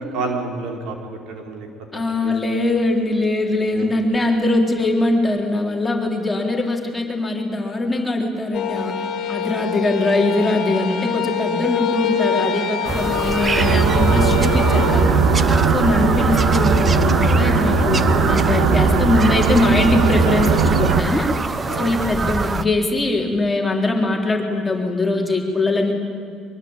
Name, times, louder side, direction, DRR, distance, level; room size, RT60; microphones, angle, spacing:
voice 1, 0.1-1.7 1.9-2.3 3.7-3.9 21.7-21.9, right 3 dB, 70° right, 3 dB, 4.5 m, -30 dB
voice 2, 1.9-15.3 15.7-21.3 21.8-25.9, left 2 dB, 15° left, 0 dB, 3.7 m, -21 dB
sound 1, 8.5-15.0, left 7 dB, 55° left, 2.1 m, -25 dB
Bird vocalization bird call bird song, 12.8-22.6, right 4 dB, 25° right, 1.0 m, -25 dB
sound 2, 13.6-21.0, right 4 dB, 85° right, 1.9 m, -18 dB
23.5 x 23.0 x 8.9 m, 2.2 s
cardioid pair, 125°, 0 cm